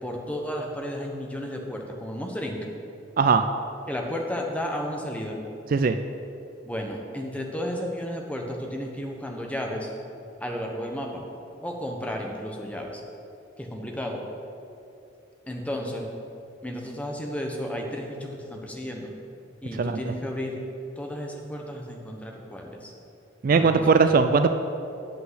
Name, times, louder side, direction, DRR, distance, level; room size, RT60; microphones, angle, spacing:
voice 1, 0.0-2.6 3.9-5.4 6.6-9.9 10.4-11.2 11.6-13.0 13.6-14.2 15.5-16.1 16.6-19.1 19.6-20.6 21.0-22.9 23.5-24.1, equal, 5° left, 1 dB, 1.0 m, -33 dB
voice 2, 3.2-3.5 5.7-6.0 19.8-20.0 23.4-24.5, right 5 dB, 45° right, 9 dB, 0.3 m, -19 dB
8.2 x 5.7 x 7.9 m, 2.7 s
head